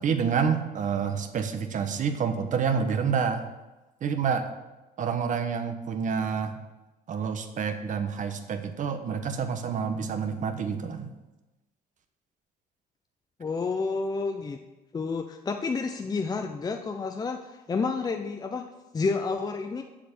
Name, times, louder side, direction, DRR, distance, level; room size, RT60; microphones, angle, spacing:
voice 1, 0.0-3.5 4.0-4.5 5.0-6.6 7.1-11.1, right 6 dB, 50° right, 8 dB, 1.1 m, -28 dB
voice 2, 13.4-14.6 14.9-18.7 18.9-19.8, left 4 dB, 25° left, 5 dB, 0.6 m, -30 dB
7.5 x 6.6 x 7.2 m, 1.1 s
cardioid pair, 110°, 17 cm